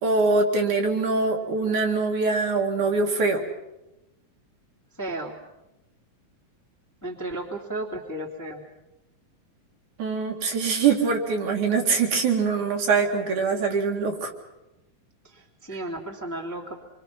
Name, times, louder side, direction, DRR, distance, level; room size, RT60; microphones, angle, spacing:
voice 1, 0.0-3.4 10.0-14.3, right 4 dB, 60° right, 1 dB, 3.5 m, -23 dB
voice 2, 5.0-5.4 7.0-8.6 15.2-16.8, right 1 dB, 5° left, 0 dB, 1.9 m, -34 dB
26.5 x 24.0 x 5.8 m, 0.93 s
omnidirectional pair, 4.0 m